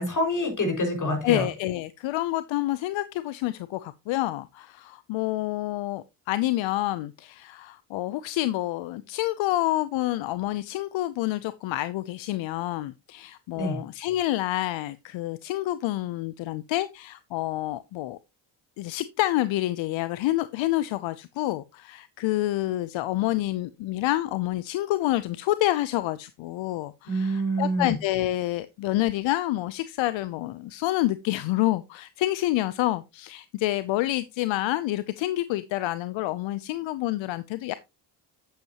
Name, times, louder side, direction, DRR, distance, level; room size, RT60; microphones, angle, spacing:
voice 1, 0.0-1.5 13.6-13.8 27.1-28.0, equal, 40° left, 5.6 m, -26 dB
voice 2, 1.2-18.2 18.8-37.7, left 16 dB, 80° left, 0.7 m, -28 dB
10.0 x 8.0 x 3.0 m
supercardioid pair, 70°, 45 cm